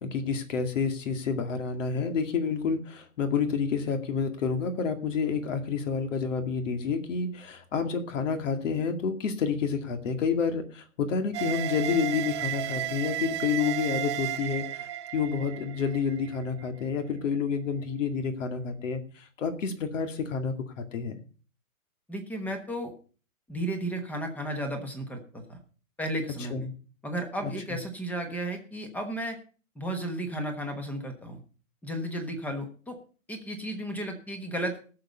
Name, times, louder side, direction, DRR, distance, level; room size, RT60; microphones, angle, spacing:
voice 1, 0.0-21.2 26.5-26.7 27.4-27.8, left 6 dB, 60° left, 7 dB, 2.4 m, -29 dB
sound 1, 11.3-16.7, right 12 dB, 20° right, 0.5 m, -33 dB
voice 2, 22.1-22.9 23.5-25.6 26.0-26.7 27.0-29.4 29.7-31.4 31.8-33.0 33.3-34.8, right 1 dB, 5° left, 6 dB, 1.2 m, -33 dB
17.5 x 6.9 x 5.3 m, 0.39 s
hypercardioid pair, 155°, 42 cm